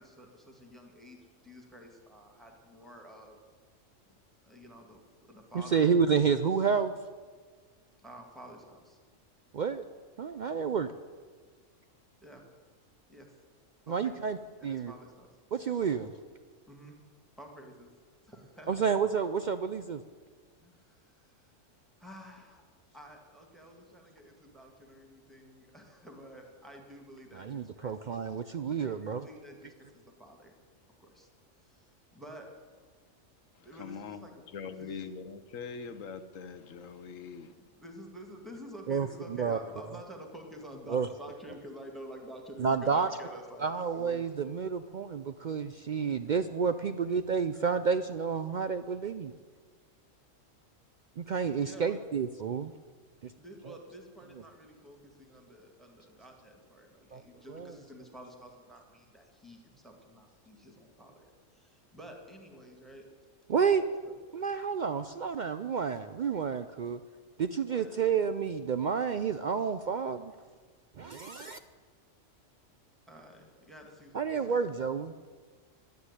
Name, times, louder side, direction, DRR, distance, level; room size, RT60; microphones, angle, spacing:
voice 1, 0.0-3.4 4.4-5.9 8.0-9.0 12.2-12.4 13.1-13.3 13.9-15.3 15.6-15.7 16.7-17.0 17.4-17.9 18.2-18.8 20.6-21.5 22.0-22.7 22.9-27.9 28.8-30.5 31.0-31.3 31.6-32.5 33.6-34.3 34.6-35.1 37.4-44.3 51.6-52.0 53.4-63.1 64.0-64.1 67.7-68.0 73.1-74.8, equal, ahead, 2 dB, 2.1 m, -50 dB
voice 2, 5.5-6.9 9.5-9.8 10.2-10.9 13.9-14.4 14.6-14.9 15.5-16.1 18.7-20.0 27.3-29.2 38.9-39.1 39.4-39.6 40.9-41.1 42.6-43.1 43.6-49.3 51.2-52.7 53.2-53.3 57.1-57.2 57.5-57.7 63.5-63.8 64.3-67.0 67.4-70.3 71.0-71.6 74.1-75.1, right 6 dB, 60° right, 10 dB, 0.5 m, -30 dB
voice 3, 33.8-34.3 34.5-37.5, left 5 dB, 90° left, 10 dB, 1.3 m, -42 dB
11.5 x 9.4 x 9.8 m, 1.5 s
omnidirectional pair, 1.3 m